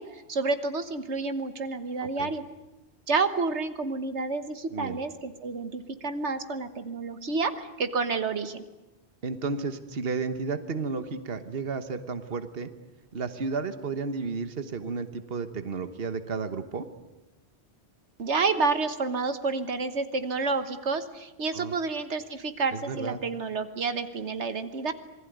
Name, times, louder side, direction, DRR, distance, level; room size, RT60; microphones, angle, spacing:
voice 1, 0.0-2.4 3.1-8.6 18.2-24.9, right 4 dB, 80° right, 10 dB, 1.6 m, -29 dB
voice 2, 2.0-2.3 4.7-5.0 9.2-12.7 13.1-16.9 21.5-21.7 22.7-23.2, right 4 dB, 60° right, 10 dB, 1.5 m, -32 dB
27.5 x 20.5 x 9.4 m, 1.0 s
omnidirectional pair, 1.1 m